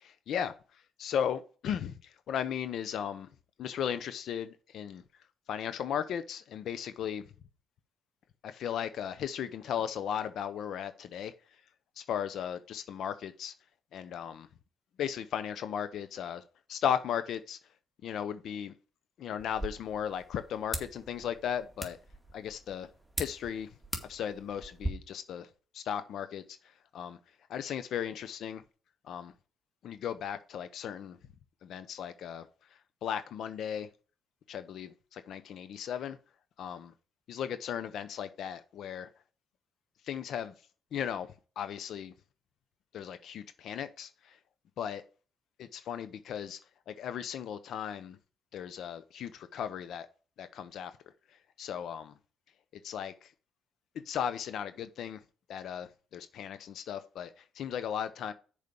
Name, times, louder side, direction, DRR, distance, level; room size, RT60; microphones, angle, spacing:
voice 1, 1.0-1.9 2.3-3.3 3.6-5.0 5.5-7.2 8.4-11.3 12.0-13.5 13.9-14.5 15.0-16.4 16.7-17.6 18.0-18.7 19.2-22.0 22.3-22.9 23.2-23.7 24.1-25.5 25.7-26.4 26.9-27.2 27.5-28.6 29.1-29.3 29.8-31.2 31.6-32.5 33.0-33.9 34.5-36.2 36.6-36.9 37.3-39.1 40.1-40.5 40.9-41.3 41.6-42.1 42.9-44.1 44.8-45.0 45.6-46.6 46.9-48.2 48.5-50.1 50.4-50.9 51.6-52.1 52.8-53.1 54.1-55.2 55.5-58.3, left 9 dB, 65° left, 0.7 m, -36 dB
sound 1, 19.4-24.9, right 1 dB, ahead, 2.0 m, -41 dB
6.8 x 4.9 x 6.9 m
cardioid pair, 80°, 0 cm